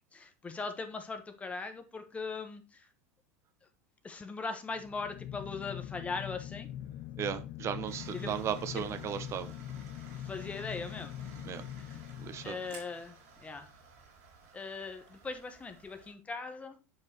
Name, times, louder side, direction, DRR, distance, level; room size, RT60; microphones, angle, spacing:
voice 1, 0.1-2.9 4.0-6.7 8.1-8.4 8.7-8.8 10.1-11.2 11.8-12.0 12.4-13.7 14.5-16.8, left 4 dB, 15° left, 1.1 m, -40 dB
sound 1, 4.7-13.1, left 11 dB, 50° left, 0.6 m, -43 dB
voice 2, 7.2-9.5 11.5-11.6 12.2-12.6, right 9 dB, 35° right, 1.2 m, -36 dB
sound 2, 7.9-16.1, right 3 dB, 60° right, 2.5 m, -54 dB
7.5 x 4.8 x 4.4 m
hypercardioid pair, 90°, 8 cm